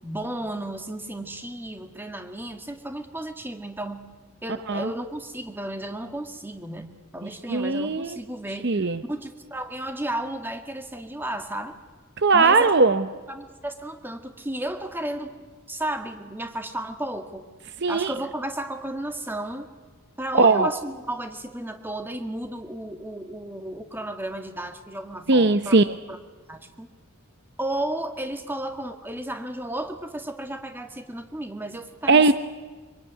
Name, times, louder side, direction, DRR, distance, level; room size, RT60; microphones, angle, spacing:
voice 1, 0.0-4.1 4.4-11.7 12.3-12.7 13.3-15.3 15.7-17.5 17.9-19.7 20.2-25.8 26.1-26.2 26.5-26.9 27.6-32.2, right 1 dB, 10° right, 6 dB, 1.9 m, -33 dB
voice 2, 7.5-8.2 8.6-9.0 12.2-13.1 17.8-18.1 20.3-20.7 25.3-25.9 32.1-32.3, right 3 dB, 50° right, 11 dB, 0.8 m, -19 dB
25.5 x 24.0 x 9.7 m, 1.4 s
head